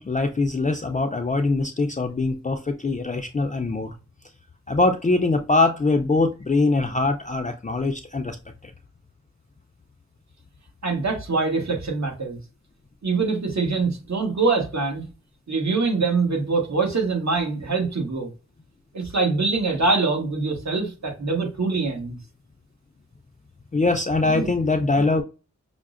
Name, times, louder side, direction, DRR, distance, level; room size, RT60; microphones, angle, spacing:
voice 1, 0.0-3.9 4.7-8.4 8.6-8.7 23.7-25.2, left 3 dB, 25° left, 0.4 m, -22 dB
voice 2, 10.8-12.4 13.0-15.1 15.5-18.3 18.9-22.2 24.2-24.5 24.9-25.0, right 4 dB, 65° right, 1.3 m, -24 dB
5.6 x 2.0 x 2.4 m
cardioid pair, 45°, 30 cm